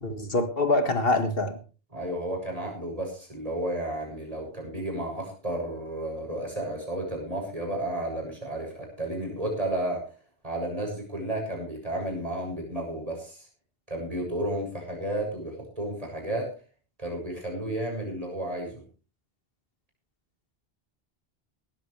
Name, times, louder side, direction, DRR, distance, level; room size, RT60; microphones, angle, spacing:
voice 1, 0.0-1.6, left 2 dB, 65° left, 7 dB, 2.0 m, -25 dB
voice 2, 1.9-10.0 10.4-13.5 13.9-16.5 17.0-18.8, right 1 dB, 35° right, 1 dB, 7.1 m, -32 dB
18.5 x 14.0 x 3.3 m, 0.35 s
omnidirectional pair, 1.0 m